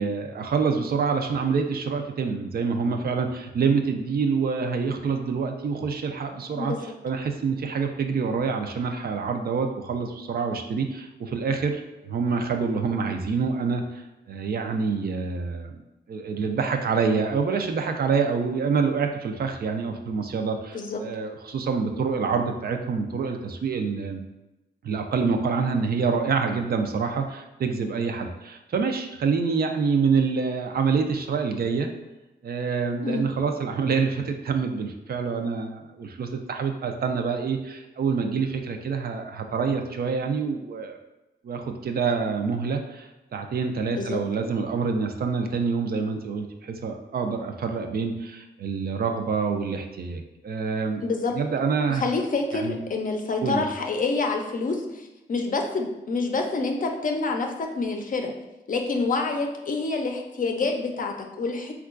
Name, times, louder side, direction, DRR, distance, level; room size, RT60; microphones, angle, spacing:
voice 1, 0.0-6.7 7.0-11.8 12.1-14.0 14.3-15.8 16.1-24.2 24.8-31.9 32.4-41.0 41.4-51.0 51.3-52.0 52.5-52.8 53.4-53.6, right 5 dB, 55° right, 4 dB, 0.4 m, -26 dB
voice 2, 43.9-44.2 51.0-51.3 51.9-58.3 58.7-61.7, left 3 dB, 45° left, 3 dB, 0.5 m, -27 dB
3.6 x 2.3 x 2.4 m, 0.99 s
cardioid pair, 65°, 19 cm